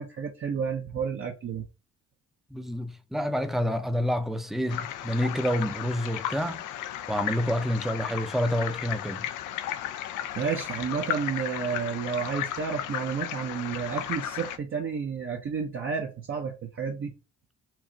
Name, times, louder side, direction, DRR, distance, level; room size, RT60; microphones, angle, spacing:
voice 1, 0.0-1.7 10.4-17.1, right 6 dB, 45° right, 0.7 m, -31 dB
voice 2, 2.5-6.7 7.1-9.3, equal, ahead, 0.5 m, -28 dB
sound 1, 4.7-14.6, left 11 dB, 90° left, 0.5 m, -35 dB
4.6 x 2.5 x 2.8 m
cardioid pair, 90°, 30 cm